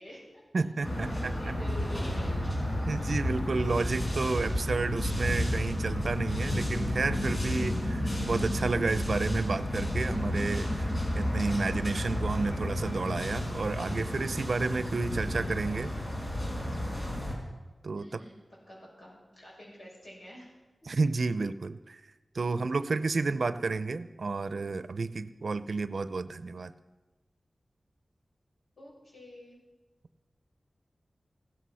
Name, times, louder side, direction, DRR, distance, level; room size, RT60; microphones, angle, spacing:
voice 1, 0.0-0.6 1.0-2.2 4.6-4.7 10.3-10.4 15.4-15.8 18.0-18.3 18.7-20.5 20.8-20.9 28.8-29.6, left 1 dB, 75° left, -4 dB, 6.8 m, -49 dB
voice 2, 0.5-1.5 2.9-15.9 16.7-16.8 17.8-18.2 20.9-22.0 22.3-26.7, right 3 dB, 70° right, 14 dB, 0.6 m, -31 dB
sound 1, 0.8-17.3, left 1 dB, 50° left, 4.5 m, -31 dB
15.5 x 13.0 x 5.7 m, 1.2 s
cardioid pair, 55°, 0 cm